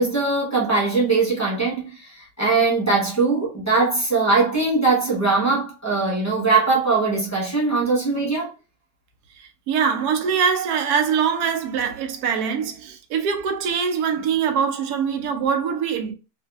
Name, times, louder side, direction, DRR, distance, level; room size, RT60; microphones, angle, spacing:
voice 1, 0.0-8.5, right 3 dB, 15° left, 0.6 m, -21 dB
voice 2, 9.4-16.1, right 6 dB, 75° right, 1.1 m, -23 dB
2.7 x 2.6 x 2.3 m
omnidirectional pair, 1.7 m